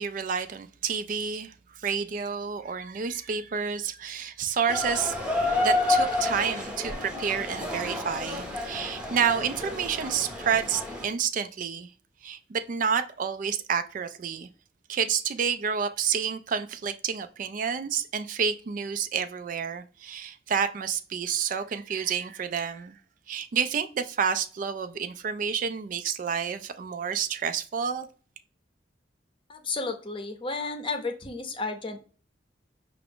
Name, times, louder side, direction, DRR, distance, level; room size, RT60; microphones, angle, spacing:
voice 1, 0.0-5.1 5.6-11.9 12.2-14.5 14.9-23.0 23.3-28.1, right 7 dB, 45° right, 0.4 m, -29 dB
sound 1, 4.7-11.1, left 2 dB, 5° right, 0.8 m, -29 dB
voice 2, 29.5-32.0, left 3 dB, 30° left, 0.7 m, -32 dB
5.7 x 2.5 x 3.5 m
head